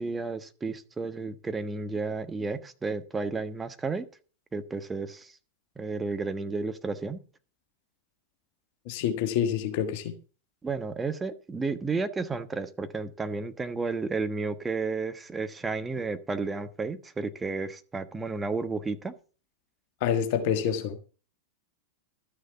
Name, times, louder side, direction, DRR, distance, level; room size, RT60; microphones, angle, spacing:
voice 1, 0.0-4.0 4.5-5.3 5.8-7.2 10.6-19.1, right 4 dB, 15° right, 1.2 m, -32 dB
voice 2, 8.9-10.2 20.0-21.0, left 8 dB, 50° left, 1.5 m, -27 dB
13.0 x 6.6 x 6.8 m
figure-of-eight pair, 90°, 0 cm